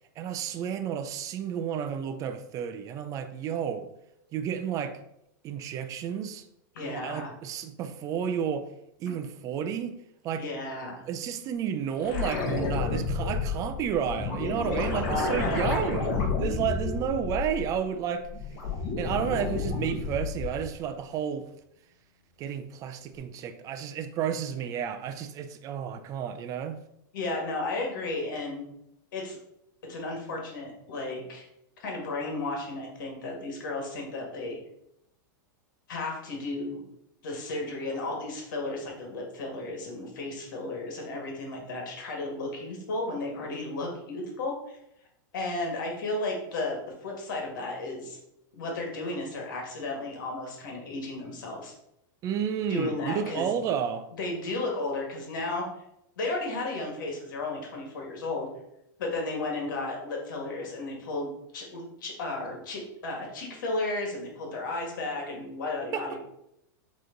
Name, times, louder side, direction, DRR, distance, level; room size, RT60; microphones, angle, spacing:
voice 1, 0.2-3.9 4.3-5.0 5.4-6.5 6.8-8.7 9.0-10.0 10.2-10.4 11.1-18.3 19.0-21.5 22.4-26.8 52.2-54.1 65.9-66.2, right 8 dB, 30° right, 0.6 m, -31 dB
voice 2, 6.8-7.3 10.3-11.0 14.7-14.8 15.1-15.7 27.1-28.7 29.1-29.4 29.8-31.5 31.8-34.6 35.9-36.8 37.2-44.8 45.3-48.2 48.5-51.7 52.7-53.4 54.2-55.7 56.2-58.5 59.0-66.2, left 2 dB, 75° left, 1.9 m, -34 dB
sound 1, 12.0-17.8 18.2-20.7 23.1-23.2, left 4 dB, 40° left, 1.6 m, -31 dB
7.7 x 3.1 x 3.9 m
supercardioid pair, 140°, 11 cm